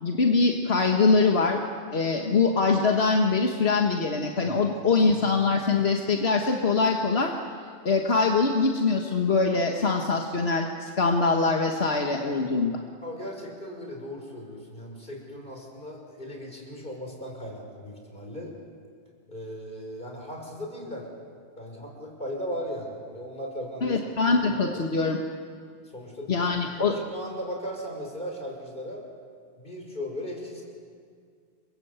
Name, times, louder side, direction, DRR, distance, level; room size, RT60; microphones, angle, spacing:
voice 1, 0.0-1.6 1.9-7.3 7.9-12.8 23.8-25.2 26.3-27.0, left 4 dB, 85° left, 2 dB, 1.8 m, -23 dB
voice 2, 13.0-18.5 19.3-21.1 21.6-24.0 24.3-24.8 25.8-26.5 26.9-29.0 29.6-30.6, equal, 55° left, 1 dB, 6.1 m, -37 dB
29.0 x 23.0 x 8.2 m, 2.1 s
omnidirectional pair, 1.0 m